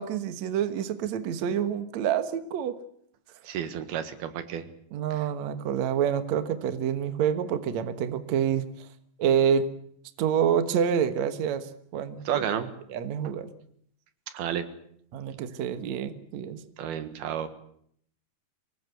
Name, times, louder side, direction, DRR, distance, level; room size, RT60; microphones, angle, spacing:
voice 1, 0.0-2.8 4.9-8.6 9.2-9.7 10.2-11.6 11.9-12.2 12.9-13.5 15.1-16.6, right 8 dB, 60° right, 10 dB, 2.2 m, -27 dB
voice 2, 3.4-4.7 5.1-5.3 12.3-12.7 14.3-14.7 16.8-17.5, right 9 dB, 80° right, 10 dB, 3.5 m, -31 dB
24.5 x 20.0 x 8.1 m, 0.68 s
omnidirectional pair, 4.4 m